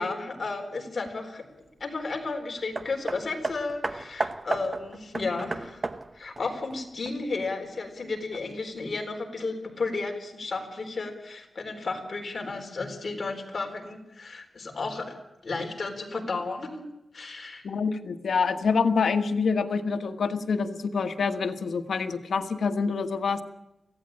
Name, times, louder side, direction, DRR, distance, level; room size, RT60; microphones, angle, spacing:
voice 1, 0.0-1.4 1.8-5.8 6.1-15.2 15.4-16.8 17.1-17.6, left 3 dB, 45° left, 3 dB, 4.1 m, -33 dB
Hammer, 2.8-7.5 8.3-8.4, right 3 dB, 30° right, 1.0 m, -34 dB
voice 2, 17.6-23.4, left 5 dB, 90° left, 8 dB, 1.4 m, -26 dB
24.5 x 16.5 x 8.9 m, 0.90 s
wide cardioid pair, 175°, 0 cm